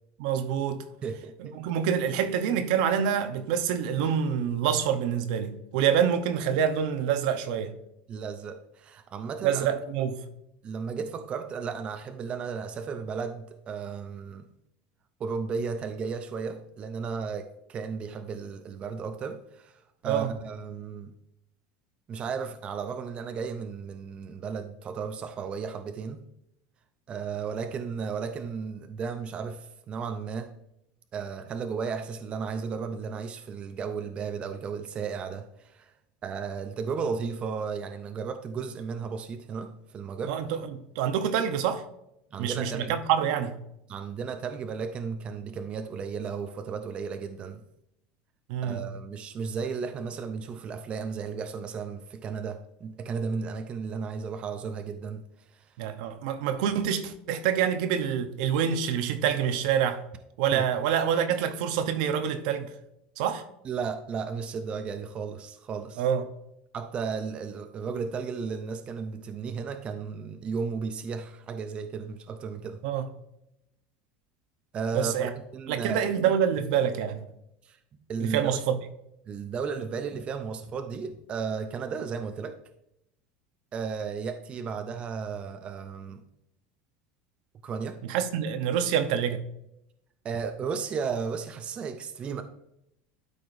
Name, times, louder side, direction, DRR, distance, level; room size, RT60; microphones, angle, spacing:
voice 1, 0.2-0.8 1.4-7.7 9.4-10.2 20.0-20.3 40.3-41.8 42.4-43.6 48.5-48.9 55.8-60.0 60.4-62.7 63.2-63.4 66.0-66.2 72.8-73.1 74.9-75.3 75.7-77.2 78.2-78.8 88.1-89.4, right 8 dB, 70° right, 0.8 m, -26 dB
voice 2, 1.0-1.6 8.1-9.7 10.6-14.4 15.2-21.1 22.1-26.3 27.1-30.5 31.1-35.9 36.2-40.4 42.3-43.0 43.9-47.6 48.6-55.2 55.5-55.7 60.5-60.6 63.6-66.0 66.7-72.8 74.7-76.0 77.6-77.8 78.1-78.6 79.3-82.6 83.7-86.2 87.6-88.0 90.2-92.4, right 5 dB, 25° right, 0.5 m, -34 dB
12.5 x 4.9 x 2.6 m
cardioid pair, 160°, 5 cm